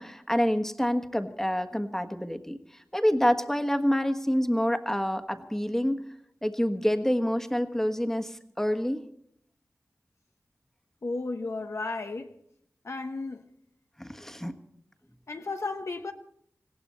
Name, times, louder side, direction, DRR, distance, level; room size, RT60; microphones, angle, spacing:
voice 1, 0.0-6.0 6.4-9.0 14.0-14.6, equal, 10° left, 1.4 m, -27 dB
voice 2, 11.0-12.3 12.8-13.5 15.3-16.1, left 3 dB, 65° left, 1.0 m, -34 dB
19.5 x 17.0 x 4.4 m
wide cardioid pair, 55°, 5 cm